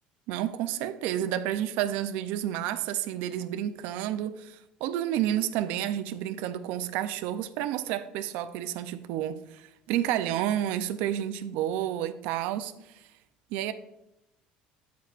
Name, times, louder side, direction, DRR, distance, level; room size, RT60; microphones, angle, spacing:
voice 1, 0.3-12.7 13.5-13.7, right 11 dB, 75° right, 0.5 m, -30 dB
9.3 x 8.1 x 2.4 m
cardioid pair, 175°, 3 cm